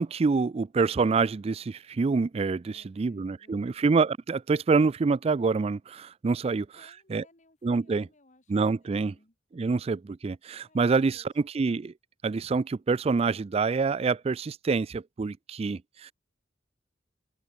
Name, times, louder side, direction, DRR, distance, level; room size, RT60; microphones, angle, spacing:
voice 1, 0.0-6.7 7.1-7.2 7.6-8.1 8.5-9.1 9.5-11.9 12.2-16.1, right 4 dB, 35° right, 0.3 m, -26 dB
voice 2, 2.7-3.9 6.5-8.5 8.8-9.4 10.7-11.3, left 2 dB, 40° left, 3.7 m, -62 dB
open air
head